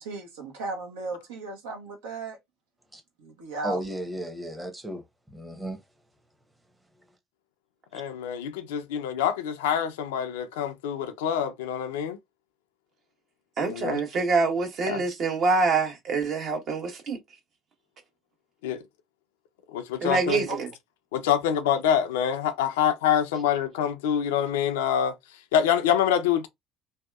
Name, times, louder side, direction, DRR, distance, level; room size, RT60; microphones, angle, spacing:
voice 1, 0.0-2.4 3.2-3.8 20.5-20.6, right 3 dB, 80° right, 0.9 m, -35 dB
voice 2, 3.6-5.8, equal, 10° right, 0.8 m, -34 dB
voice 3, 7.9-12.2 13.6-14.0 14.9-15.0 18.6-18.8 19.7-20.5 21.1-25.1 25.5-26.5, left 9 dB, 80° left, 0.4 m, -26 dB
voice 4, 13.6-17.2 20.0-20.7, right 4 dB, 55° right, 1.0 m, -25 dB
2.7 x 2.2 x 2.3 m
hypercardioid pair, 65°, 0 cm